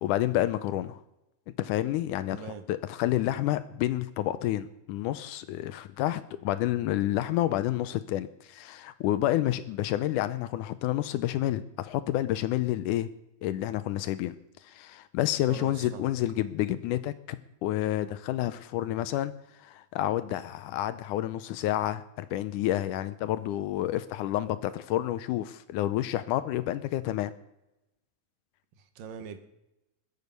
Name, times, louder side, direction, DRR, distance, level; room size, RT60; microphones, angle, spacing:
voice 1, 0.0-1.0 1.6-13.1 13.4-14.4 14.6-17.4 17.6-19.3 19.6-27.3, left 13 dB, 80° left, 13 dB, 2.0 m, -29 dB
voice 2, 2.3-2.6 15.5-16.1 28.8-29.4, right 7 dB, 90° right, 8 dB, 2.9 m, -42 dB
21.0 x 8.3 x 5.4 m, 0.93 s
omnidirectional pair, 3.8 m